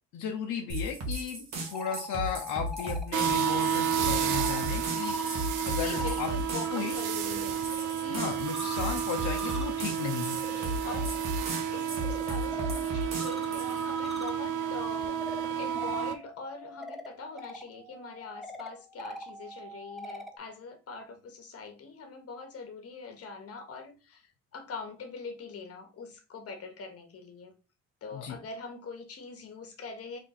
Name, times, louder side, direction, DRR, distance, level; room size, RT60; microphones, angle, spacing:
voice 1, 0.1-5.2 5.6-6.3 6.7-6.9 8.1-10.4 28.1-28.4, left 7 dB, 80° left, 0.7 m, -35 dB
sound 1, 0.7-13.9, right 1 dB, 60° right, 1.4 m, -36 dB
sound 2, 1.5-6.8 7.1-20.4, left 1 dB, ahead, 0.7 m, -44 dB
sound 3, 3.1-16.1, right 8 dB, 85° right, 0.6 m, -31 dB
voice 2, 5.8-7.6 8.0-8.2 10.5-27.5 28.0-30.2, left 4 dB, 50° left, 1.3 m, -43 dB
3.5 x 2.5 x 4.0 m
cardioid pair, 90°, 30 cm